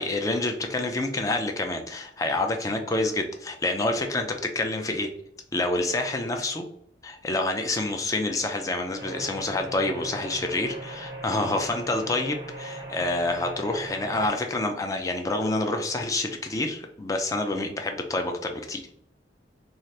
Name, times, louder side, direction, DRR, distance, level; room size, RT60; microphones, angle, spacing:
voice 1, 0.0-5.1 5.5-6.7 7.0-18.9, left 2 dB, 20° left, 4 dB, 0.3 m, -28 dB
sound 1, 9.0-14.3, right 1 dB, 15° right, 0.6 m, -39 dB
2.7 x 2.4 x 3.2 m, 0.73 s
head